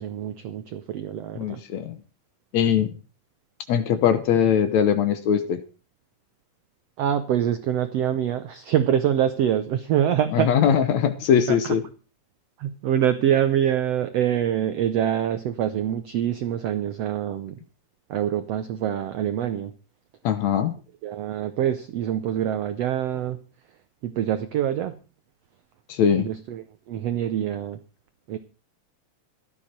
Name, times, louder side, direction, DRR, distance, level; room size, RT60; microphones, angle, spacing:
voice 1, 0.0-1.6 7.0-10.8 11.5-11.7 12.6-17.6 18.1-19.7 21.0-23.4 24.0-25.0 26.2-27.8 28.3-28.4, right 10 dB, 80° right, 10 dB, 1.4 m, -25 dB
voice 2, 1.4-2.0 2.5-2.9 3.7-5.6 10.3-11.8 20.2-20.7 25.9-26.3, left 8 dB, 65° left, 10 dB, 1.9 m, -21 dB
16.5 x 12.0 x 4.4 m, 0.36 s
omnidirectional pair, 4.0 m